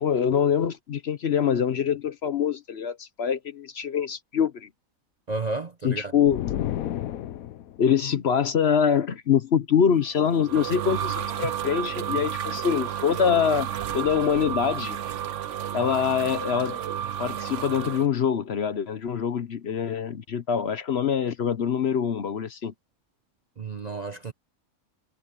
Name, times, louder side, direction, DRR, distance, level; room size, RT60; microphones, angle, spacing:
voice 1, 0.0-4.7 5.8-6.4 7.8-13.7 13.9-15.0 15.7-16.8 17.2-22.7, left 7 dB, 55° left, 0.9 m, -24 dB
voice 2, 5.3-6.1 23.6-24.3, right 3 dB, 40° right, 0.7 m, -32 dB
sound 1, 6.3-7.8, left 12 dB, 80° left, 1.1 m, -31 dB
sound 2, 10.1-18.1, right 10 dB, 60° right, 1.0 m, -31 dB
omnidirectional pair, 1.5 m